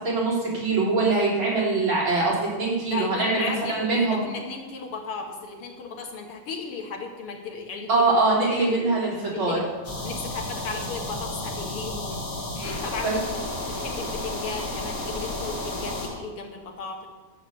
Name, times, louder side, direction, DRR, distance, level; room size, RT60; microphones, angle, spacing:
voice 1, 0.0-4.2 7.9-9.6 13.0-13.2, right 3 dB, 65° right, -6 dB, 4.8 m, -23 dB
voice 2, 2.8-7.9 8.4-9.0 9.3-9.6 10.0-12.2 12.6-13.2 13.6-17.1, left 4 dB, 90° left, 2 dB, 2.6 m, -35 dB
sound 1, 9.8-16.1, left 1 dB, 50° left, 3.4 m, -32 dB
12.0 x 7.2 x 8.0 m, 1.3 s
omnidirectional pair, 2.4 m